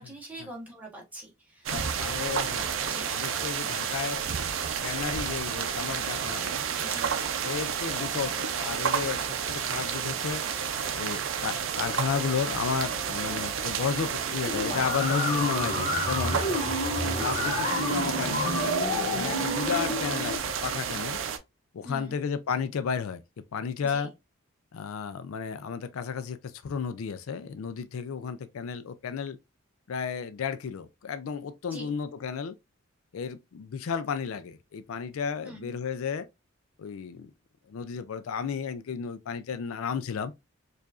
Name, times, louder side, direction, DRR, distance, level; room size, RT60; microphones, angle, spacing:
voice 1, 0.0-1.8 2.5-2.6 2.9-3.1 6.8-7.2 17.1-18.3 20.1-20.3 21.8-22.2 23.8-24.1 31.7-31.9 35.4-35.8, right 1 dB, 5° right, 1.0 m, -44 dB
voice 2, 1.7-4.2 4.8-6.6 7.4-10.4 10.9-16.4 17.0-18.7 19.0-21.2 21.7-24.1 24.7-29.4 29.9-32.6 33.1-36.3 36.8-37.3 37.7-40.3, left 6 dB, 70° left, 0.4 m, -33 dB
sound 1, 1.7-21.4, right 7 dB, 65° right, 0.5 m, -31 dB
sound 2, 14.4-20.4, left 1 dB, 30° left, 1.2 m, -29 dB
4.6 x 2.4 x 2.4 m
head